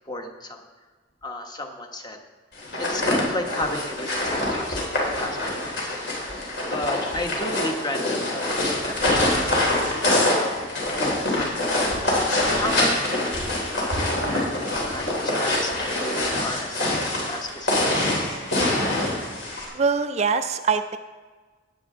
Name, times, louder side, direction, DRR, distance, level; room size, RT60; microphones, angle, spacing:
voice 1, 0.1-0.6 1.2-2.2 2.8-5.9 6.2-6.4 6.6-10.6 10.9-11.7 12.6-18.2, left 1 dB, 20° left, 4 dB, 1.0 m, -33 dB
sound 1, 2.6-19.7, left 1 dB, 60° left, 3.6 m, -25 dB
voice 2, 19.7-21.0, right 5 dB, 35° right, 9 dB, 0.4 m, -23 dB
17.5 x 8.6 x 3.7 m, 1.4 s
head